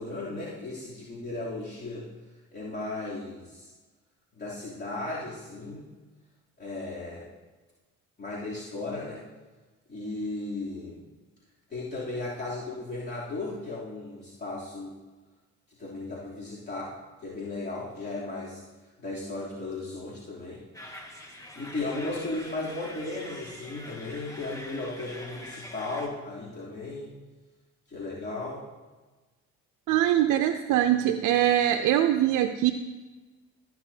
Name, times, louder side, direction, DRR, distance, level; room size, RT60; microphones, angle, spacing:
voice 1, 0.0-2.0 2.5-3.7 4.3-5.9 6.6-7.3 8.2-9.2 9.9-11.0 11.7-14.9 15.8-16.9 17.2-18.6 19.0-20.6 21.5-27.1 27.9-28.6, left 2 dB, 35° left, -8 dB, 3.0 m, -35 dB
sound 1, 20.7-26.1, left 1 dB, 10° left, 1.7 m, -44 dB
voice 2, 29.9-32.7, right 12 dB, 80° right, 7 dB, 0.6 m, -23 dB
14.0 x 9.5 x 2.8 m, 1.2 s
cardioid pair, 90°, 30 cm